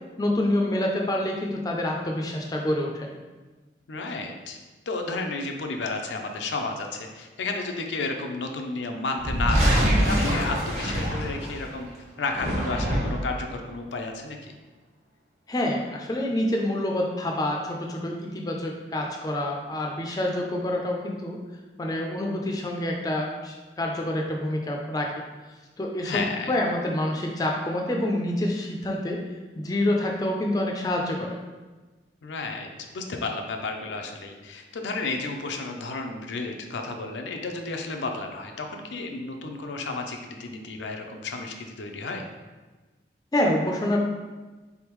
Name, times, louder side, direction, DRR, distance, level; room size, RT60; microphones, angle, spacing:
voice 1, 0.2-3.1 15.5-21.4 21.8-25.2 25.8-29.2 29.6-31.4 43.3-44.0, left 1 dB, 20° left, 0 dB, 0.4 m, -27 dB
voice 2, 3.9-4.6 4.9-11.9 12.2-14.5 26.0-26.5 32.2-42.2, left 3 dB, 85° left, 3 dB, 0.5 m, -32 dB
sound 1, 9.2-11.7 12.2-13.4, equal, 40° right, 0.8 m, -24 dB
3.9 x 3.5 x 3.0 m, 1.3 s
head